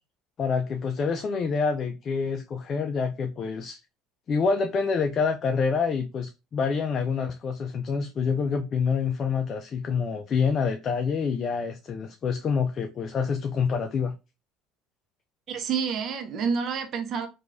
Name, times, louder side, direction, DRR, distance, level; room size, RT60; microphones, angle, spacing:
voice 1, 0.4-3.8 4.3-14.1, left 5 dB, 45° left, 0.3 m, -27 dB
voice 2, 15.5-17.3, right 6 dB, 50° right, 0.6 m, -28 dB
3.0 x 2.3 x 2.5 m
hypercardioid pair, 80°, 0 cm